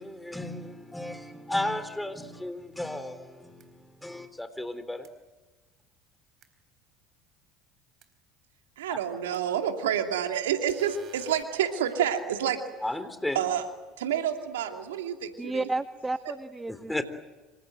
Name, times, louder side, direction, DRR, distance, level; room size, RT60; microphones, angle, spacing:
voice 1, 0.0-5.1 8.9-9.0 12.8-13.4 16.7-17.0, left 1 dB, 5° left, 11 dB, 3.7 m, -34 dB
sound 1, 3.6-3.7 5.0-5.1 6.4-6.5 8.0-8.1 9.3-9.4 10.7-11.4, right 8 dB, 50° right, 4.2 m, -52 dB
voice 2, 8.8-12.6 13.3-13.7 14.0-15.7 16.3-16.4, right 9 dB, 80° right, 5 dB, 2.7 m, -28 dB
voice 3, 15.4-17.0, right 2 dB, 15° right, 12 dB, 1.0 m, -32 dB
26.5 x 26.5 x 7.9 m, 1.2 s
hypercardioid pair, 70°, 0 cm